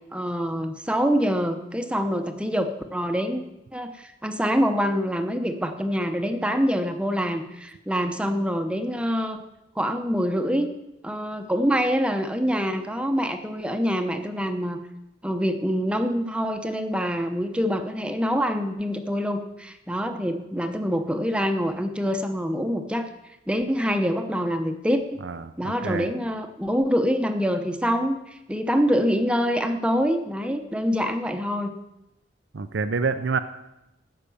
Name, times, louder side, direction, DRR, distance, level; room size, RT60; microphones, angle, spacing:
voice 1, 0.1-3.4 3.7-9.4 9.8-10.7 11.0-14.8 15.2-23.1 23.5-25.2 25.6-31.7, equal, 5° right, 6 dB, 0.9 m, -25 dB
voice 2, 25.2-26.1 32.5-33.4, right 4 dB, 80° right, 10 dB, 0.6 m, -27 dB
14.5 x 6.7 x 8.5 m, 0.92 s
head